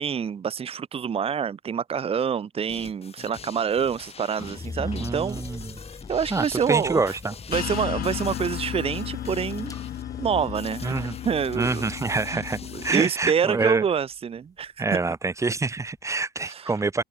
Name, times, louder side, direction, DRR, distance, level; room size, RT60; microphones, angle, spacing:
voice 1, 0.0-5.4 6.1-7.2 7.5-9.7 10.2-11.8 12.3-12.4 12.7-15.0 16.4-16.7, right 7 dB, 35° right, 1.2 m, -27 dB
sound 1, 2.7-13.1, left 6 dB, 35° left, 3.9 m, -44 dB
sound 2, 4.4-14.6 15.0-15.8, left 3 dB, 20° left, 3.9 m, -42 dB
voice 2, 4.8-5.8 6.3-7.3 10.8-11.2 11.5-13.8 14.8-17.0, right 3 dB, 15° right, 1.7 m, -26 dB
sound 3, 7.5-12.9, left 11 dB, 60° left, 1.9 m, -34 dB
cardioid pair, 110°, 17 cm